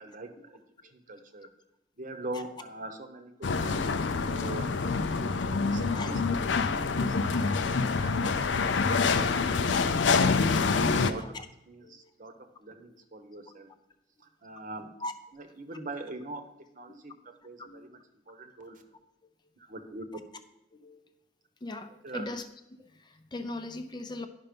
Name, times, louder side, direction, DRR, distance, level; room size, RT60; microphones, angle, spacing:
voice 1, 0.0-1.5 2.0-4.7 5.1-6.2 6.6-10.1 10.6-11.4 11.7-13.7 14.2-14.9 15.3-16.5 16.7-18.0 18.3-18.9 19.6-20.2 21.9-22.3, right 2 dB, 45° right, 8 dB, 0.9 m, -43 dB
sound 1, 3.4-11.1, left 4 dB, 70° left, 0.5 m, -26 dB
voice 2, 6.7-7.0 7.3-7.7 11.2-11.3 11.8-12.1 15.0-15.1 17.7-17.8 20.8-21.0 21.6-22.4 22.8-24.3, left 2 dB, 25° left, 8 dB, 0.5 m, -40 dB
10.5 x 5.6 x 5.2 m, 0.87 s
head